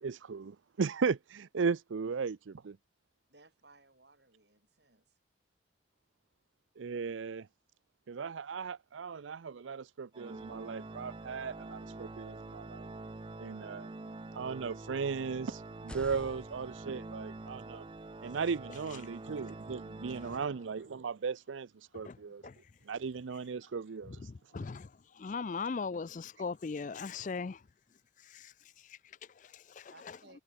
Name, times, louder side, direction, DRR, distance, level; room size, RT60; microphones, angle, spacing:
voice 1, 0.0-2.8 6.8-7.5 8.1-12.9 13.4-13.9 14.3-17.8 18.2-22.4 22.9-24.3, right 5 dB, 85° right, 0.5 m, -36 dB
voice 2, 3.3-5.2 29.9-30.4, right 2 dB, 60° right, 4.3 m, -61 dB
Organ, 10.1-21.0, right 2 dB, 25° right, 0.5 m, -46 dB
sound 1, 15.7-19.6, equal, 5° left, 6.1 m, -54 dB
voice 3, 21.9-22.7 24.0-27.6 28.2-30.2, left 4 dB, 40° left, 0.4 m, -40 dB
head